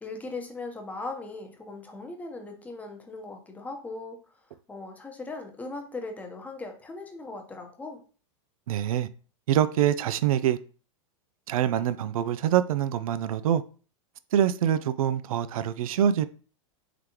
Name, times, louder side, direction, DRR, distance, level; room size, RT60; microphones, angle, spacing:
voice 1, 0.0-4.2 4.7-8.0, left 3 dB, 10° left, 0.8 m, -39 dB
voice 2, 8.7-9.1 9.5-10.6 11.5-13.6 14.3-16.3, right 10 dB, 85° right, 0.4 m, -25 dB
3.9 x 3.3 x 2.9 m
supercardioid pair, 135°, 18 cm